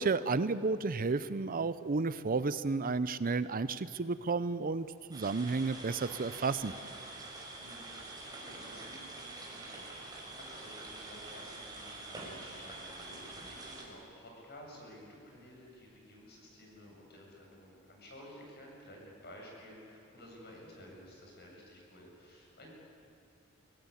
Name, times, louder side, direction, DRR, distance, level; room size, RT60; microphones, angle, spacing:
voice 1, 0.0-6.7, right 4 dB, 40° right, 14 dB, 0.6 m, -32 dB
sound 1, 5.1-13.8, right 2 dB, 20° right, 5.4 m, -46 dB
voice 2, 7.0-22.7, left 1 dB, 50° left, -1 dB, 7.6 m, -53 dB
24.5 x 17.0 x 9.8 m, 2.6 s
head